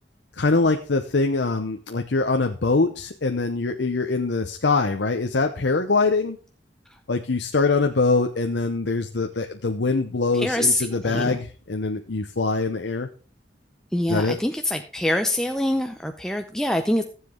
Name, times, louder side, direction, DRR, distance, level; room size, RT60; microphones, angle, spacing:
voice 1, 0.4-6.4 7.1-13.1 14.1-14.4, left 3 dB, 75° left, 5 dB, 0.8 m, -23 dB
voice 2, 10.3-11.4 13.9-17.0, left 1 dB, 5° left, 5 dB, 0.6 m, -24 dB
15.0 x 7.6 x 3.8 m, 0.37 s
head